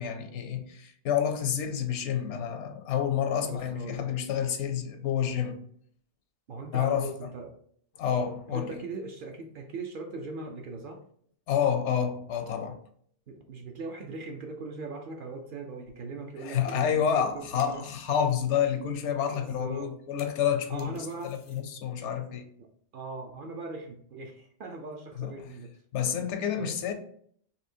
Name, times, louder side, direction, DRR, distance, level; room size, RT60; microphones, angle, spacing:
voice 1, 0.0-5.6 6.7-7.3 8.0-8.8 11.5-12.8 16.4-20.9 21.2-22.4 25.1-25.3 25.9-26.9, left 8 dB, 80° left, 0.9 m, -29 dB
voice 2, 3.4-4.1 6.5-7.6 8.5-11.0 13.3-17.8 19.3-19.9 20.7-21.4 22.0-22.2 22.9-25.7 26.6-26.7, right 3 dB, 60° right, 0.6 m, -40 dB
sound 1, 15.8-16.3 16.6-17.2 17.6-18.5 18.8-18.9 19.1-19.2 19.3-19.5 19.8-21.6, left 4 dB, 50° left, 0.4 m, -54 dB
4.3 x 2.7 x 2.7 m
omnidirectional pair, 1.2 m